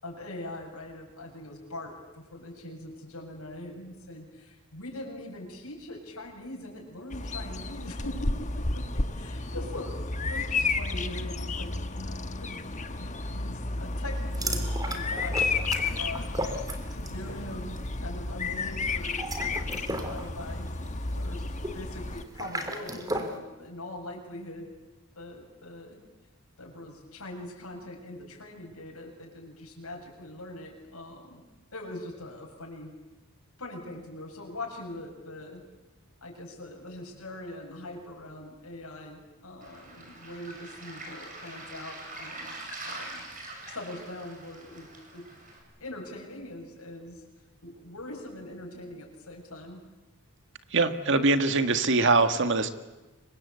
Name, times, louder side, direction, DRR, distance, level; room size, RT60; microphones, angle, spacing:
voice 1, 0.0-11.7 12.0-16.3 16.9-20.7 21.1-21.4 21.7-24.7 25.2-26.0 26.6-31.4 31.7-33.0 33.6-35.7 36.2-42.6 42.8-43.2 43.7-45.3 45.8-47.2 47.6-49.8, left 1 dB, 70° left, 0 dB, 7.6 m, -42 dB
Bird vocalization bird call bird song, 7.1-22.2, left 3 dB, 35° left, 1.3 m, -32 dB
sound 1, 14.3-17.3 17.5-17.8 19.0-23.4, right 1 dB, 15° right, 3.1 m, -35 dB
Waves surf, 39.6-45.6, right 2 dB, 40° right, 7.6 m, -43 dB
voice 2, 50.7-52.7, right 3 dB, 55° right, 9 dB, 1.8 m, -23 dB
28.5 x 24.0 x 8.4 m, 1.1 s
head